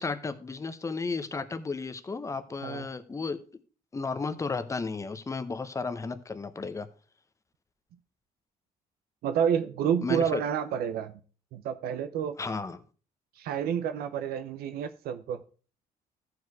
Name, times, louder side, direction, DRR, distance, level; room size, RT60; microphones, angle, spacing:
voice 1, 0.0-3.4 3.9-6.9 10.0-10.4 12.4-12.8, left 4 dB, 20° left, 12 dB, 0.8 m, -33 dB
voice 2, 9.2-11.2 11.5-12.4 13.4-15.4, right 8 dB, 85° right, 10 dB, 0.7 m, -29 dB
14.0 x 4.9 x 4.7 m, 0.39 s
cardioid pair, 135°, 15 cm